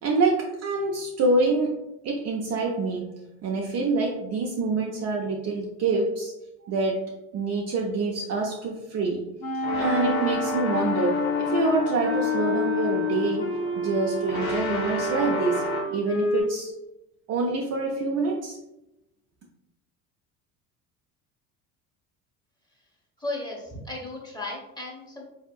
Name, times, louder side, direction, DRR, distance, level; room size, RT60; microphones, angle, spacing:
voice 1, 0.0-1.8 2.0-6.3 6.6-9.2 9.8-15.6 15.9-16.7 17.3-18.6, right 3 dB, 35° right, -1 dB, 0.5 m, -26 dB
Wind instrument woodwind instrument, 9.4-16.4, left 2 dB, 75° left, 1.5 m, -28 dB
sound 1, 9.6-15.8, left 4 dB, 45° left, 1.5 m, -32 dB
voice 2, 23.2-25.2, left 2 dB, 10° left, -2 dB, 1.1 m, -35 dB
4.3 x 2.7 x 2.4 m, 0.91 s
figure-of-eight pair, 65°, 45 cm